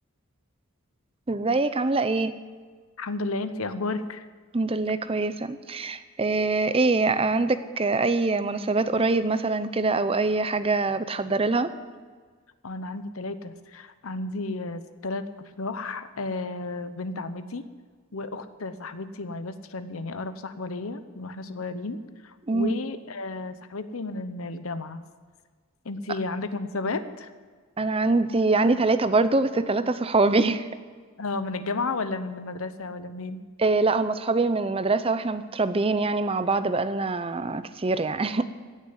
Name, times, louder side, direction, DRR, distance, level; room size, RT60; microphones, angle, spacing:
voice 1, 1.3-2.3 4.5-11.7 22.5-22.8 27.8-30.7 33.6-38.5, right 3 dB, 25° right, 12 dB, 0.6 m, -24 dB
voice 2, 3.0-4.3 12.6-17.7 18.1-22.0 22.2-25.0 25.8-27.3 31.2-33.4, left 3 dB, 75° left, 11 dB, 0.9 m, -33 dB
16.5 x 6.6 x 9.8 m, 1.5 s
head